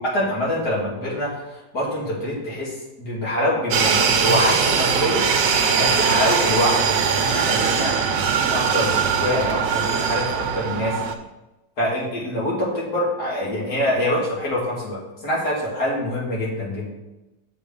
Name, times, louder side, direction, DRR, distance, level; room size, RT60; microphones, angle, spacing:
voice 1, 0.1-1.3 1.7-2.7 3.0-5.2 5.7-6.9 7.2-7.9 8.4-11.0 11.8-16.9, left 1 dB, 60° left, -6 dB, 3.5 m, -25 dB
sound 1, 3.7-11.1, right 6 dB, 90° right, 1.5 m, -21 dB
7.2 x 4.5 x 7.0 m, 1.0 s
omnidirectional pair, 1.9 m